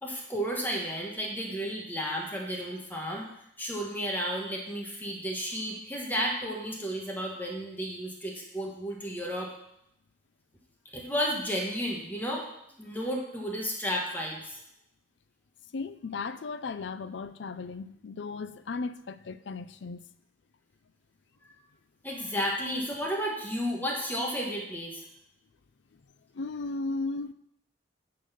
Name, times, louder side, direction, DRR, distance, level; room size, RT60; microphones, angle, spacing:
voice 1, 0.0-3.3 3.6-9.5 10.9-12.5 12.8-14.6 22.0-25.0, equal, 10° left, -1 dB, 1.3 m, -32 dB
voice 2, 15.7-20.0 26.3-27.3, left 3 dB, 75° left, 13 dB, 0.5 m, -36 dB
9.5 x 4.0 x 6.8 m, 0.77 s
head